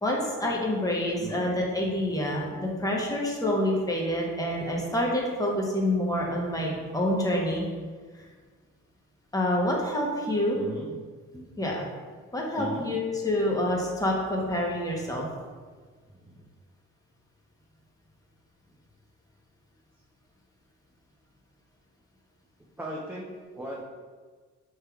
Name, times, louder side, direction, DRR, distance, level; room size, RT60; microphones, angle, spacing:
voice 1, 0.0-7.6 8.1-8.3 9.3-10.6 11.6-11.8 12.3-15.2, left 1 dB, 10° left, -2 dB, 0.9 m, -27 dB
voice 2, 1.2-1.6 10.5-10.9 11.3-11.5 12.6-12.9 16.1-16.4 22.8-23.8, right 1 dB, 5° right, -4 dB, 0.5 m, -38 dB
4.6 x 3.2 x 2.3 m, 1.5 s
cardioid pair, 90°, 30 cm